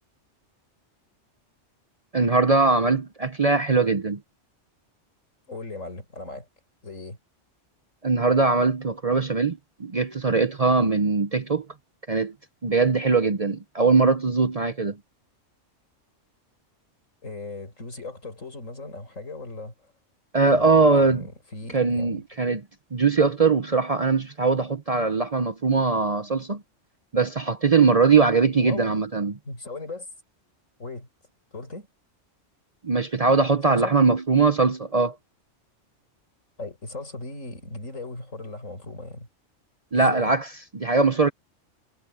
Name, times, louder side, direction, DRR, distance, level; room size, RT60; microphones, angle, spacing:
voice 1, 2.1-4.2 8.0-11.7 12.1-12.3 12.6-15.0 20.3-21.2 21.7-22.6 22.9-26.6 27.1-29.4 32.8-35.2 39.9-41.3, right 4 dB, 35° right, 0.8 m, -21 dB
voice 2, 5.5-6.5 6.8-7.2 17.2-19.9 20.5-22.2 28.6-28.9 29.4-30.1 30.8-31.1 31.5-31.9 33.7-34.0 36.6-39.3 39.9-40.3, left 3 dB, 85° left, 6.2 m, -38 dB
omnidirectional pair, 1.3 m